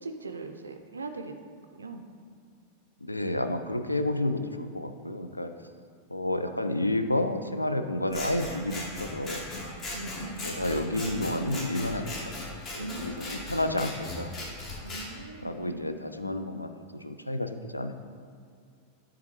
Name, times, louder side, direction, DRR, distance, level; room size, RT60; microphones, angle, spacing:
voice 1, 0.0-1.3 1.8-2.0 9.9-10.5 12.8-13.9 14.8-16.0, right 3 dB, 75° right, 5 dB, 0.4 m, -40 dB
voice 2, 3.0-5.5 6.1-9.5 10.4-12.4 12.7-14.3 15.4-18.0, left 1 dB, 85° left, 8 dB, 0.4 m, -30 dB
Scissors, 8.1-15.1, left 2 dB, 30° left, 1.2 m, -38 dB
10.5 x 3.6 x 3.2 m, 2.3 s
figure-of-eight pair, 90°, 0 cm